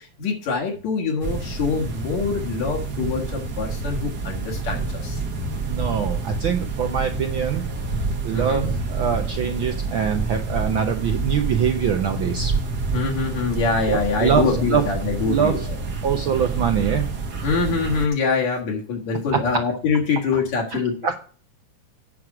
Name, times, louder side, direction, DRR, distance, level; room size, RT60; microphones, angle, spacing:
voice 1, 0.0-5.2 8.3-8.6 12.9-15.6 17.4-21.1, left 4 dB, 70° left, -1 dB, 3.1 m, -24 dB
sound 1, 1.2-18.1, right 3 dB, 55° right, 1.1 m, -28 dB
voice 2, 5.7-7.6 8.2-12.5 13.9-14.9 15.3-15.7 16.0-17.1 20.7-21.1, right 8 dB, 75° right, 5 dB, 1.1 m, -23 dB
9.3 x 6.1 x 4.9 m, 0.39 s
omnidirectional pair, 3.4 m